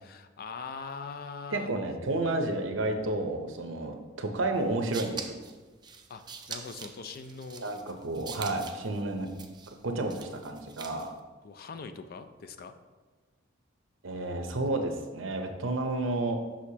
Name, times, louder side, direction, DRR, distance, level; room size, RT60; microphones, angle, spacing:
voice 1, 0.0-1.7 6.1-6.2 6.5-7.7 10.0-10.1 11.4-12.7 14.7-14.8, left 5 dB, 50° left, 9 dB, 0.4 m, -42 dB
voice 2, 1.5-5.4 7.6-9.3 9.8-11.2 14.0-16.4, right 2 dB, 70° right, 5 dB, 0.7 m, -31 dB
sound 1, 4.6-11.2, right 5 dB, 20° right, 0.4 m, -44 dB
6.3 x 5.8 x 2.8 m, 1.3 s
head